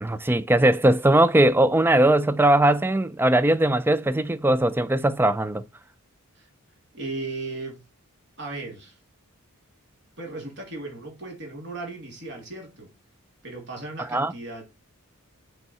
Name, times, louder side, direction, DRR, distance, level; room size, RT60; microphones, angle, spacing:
voice 1, 0.0-5.6 14.1-14.3, right 1 dB, 10° right, 0.4 m, -20 dB
voice 2, 6.9-7.8 8.4-9.0 10.2-12.9 13.4-14.6, right 2 dB, 55° right, 2.8 m, -36 dB
6.9 x 4.7 x 4.3 m
head